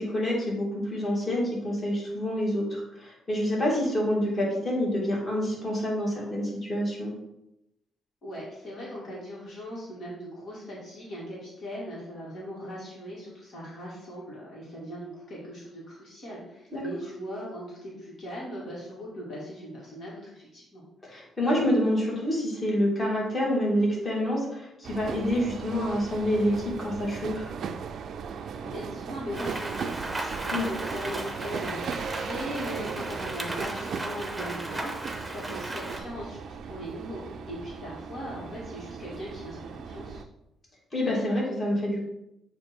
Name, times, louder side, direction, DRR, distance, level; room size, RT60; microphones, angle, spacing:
voice 1, 0.0-7.1 16.7-16.8 21.0-27.5 30.5-30.7 40.9-42.1, equal, 30° left, -4 dB, 2.3 m, -27 dB
voice 2, 8.2-20.8 28.3-40.2, equal, 55° left, -5 dB, 2.0 m, -39 dB
sound 1, 24.8-40.2, right 6 dB, 65° right, 0.4 m, -37 dB
Rain, 29.3-36.0, right 1 dB, 10° right, 0.9 m, -35 dB
7.6 x 2.8 x 4.4 m, 0.87 s
cardioid pair, 90°, 0 cm